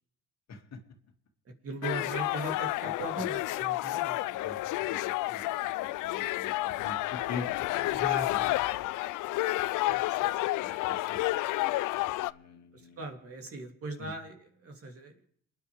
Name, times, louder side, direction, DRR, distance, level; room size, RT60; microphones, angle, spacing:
voice 1, 0.5-0.8 3.1-3.3 4.4-4.6 4.9-5.4 5.8-8.0 8.3-8.4 10.6-11.2 12.2-13.0 14.0-14.1, left 4 dB, 60° left, 3 dB, 2.4 m, -44 dB
voice 2, 1.4-4.4 7.9-8.5 9.9-11.0 11.3-11.4 12.7-15.2, right 2 dB, 50° right, 3 dB, 3.0 m, -40 dB
sound 1, 1.8-12.3, left 17 dB, 85° left, 0.5 m, -30 dB
29.0 x 9.9 x 3.5 m, 0.64 s
cardioid pair, 90°, 30 cm